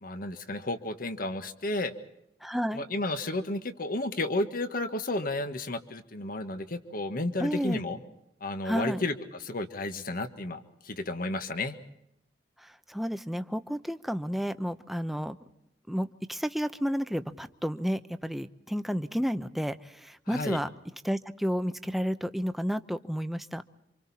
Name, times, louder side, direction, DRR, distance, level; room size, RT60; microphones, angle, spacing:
voice 1, 0.0-1.9 2.7-8.0 8.4-9.1 9.4-11.7 20.3-20.6, left 2 dB, 55° left, 8 dB, 1.5 m, -32 dB
voice 2, 2.4-2.8 7.4-7.8 8.6-9.1 12.6-15.4 15.9-20.7 21.0-23.6, equal, ahead, 10 dB, 0.8 m, -31 dB
28.0 x 26.0 x 4.3 m, 0.82 s
head